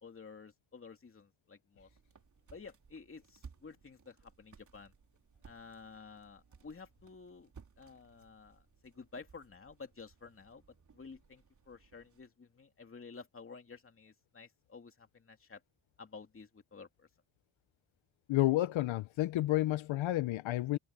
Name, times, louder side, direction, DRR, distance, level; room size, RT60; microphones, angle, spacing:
voice 1, 0.0-1.9 2.5-4.9 5.4-7.5 7.8-10.6 10.9-15.6 16.0-17.1, left 4 dB, 25° left, 2.6 m, -52 dB
sound 1, 1.7-12.3, right 5 dB, 40° right, 3.7 m, -60 dB
voice 2, 18.3-20.8, left 16 dB, 75° left, 0.7 m, -30 dB
wide cardioid pair, 145°, 47 cm